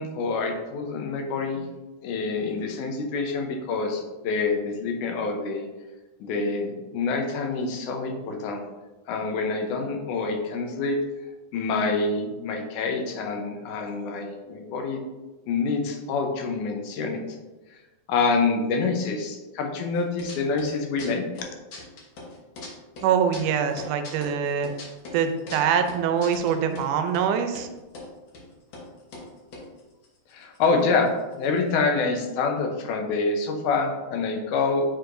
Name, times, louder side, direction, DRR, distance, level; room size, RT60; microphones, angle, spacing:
voice 1, 0.0-1.7 2.0-5.7 6.2-8.6 9.1-11.0 11.5-15.0 15.5-17.4 18.1-21.4 30.3-31.1 31.4-34.8, left 4 dB, 85° left, 3 dB, 2.3 m, -26 dB
sound 1, 20.0-20.7 21.0-22.7 23.0-26.9 27.1-27.2 27.5-28.1 28.3-28.4 28.7-28.9 29.1-30.8 31.1-31.2 31.3-31.7, left 3 dB, 60° left, 1.2 m, -40 dB
voice 2, 23.0-24.7 25.1-27.7, right 7 dB, 90° right, 7 dB, 2.1 m, -24 dB
7.9 x 4.7 x 2.6 m, 1.1 s
omnidirectional pair, 3.5 m